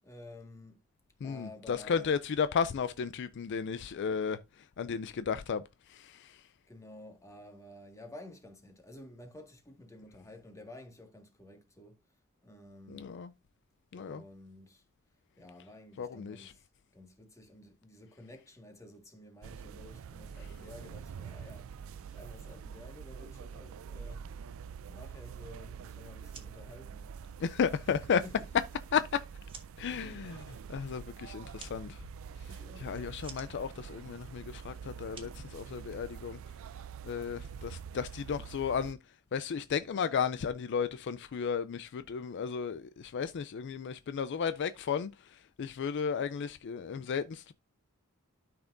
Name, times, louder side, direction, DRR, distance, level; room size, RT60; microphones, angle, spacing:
voice 1, 0.0-0.8 1.2-2.1 6.7-12.0 12.4-13.1 13.9-14.8 15.4-16.7 16.9-21.7 22.1-24.2 24.9-27.4 28.2-28.5 30.0-30.5 32.5-33.2 37.3-37.5, left 1 dB, 15° left, 1.7 m, -52 dB
voice 2, 1.2-4.4 4.8-5.6 5.9-6.4 12.9-13.3 13.9-14.2 16.0-16.5 27.4-28.2 28.9-29.2 29.8-30.4 30.7-32.0 32.8-36.4 37.0-39.0 39.3-47.5, left 6 dB, 55° left, 0.4 m, -34 dB
sound 1, 19.4-38.9, right 6 dB, 65° right, 0.4 m, -46 dB
sound 2, 26.3-36.3, right 5 dB, 25° right, 1.7 m, -56 dB
12.0 x 5.9 x 2.6 m
head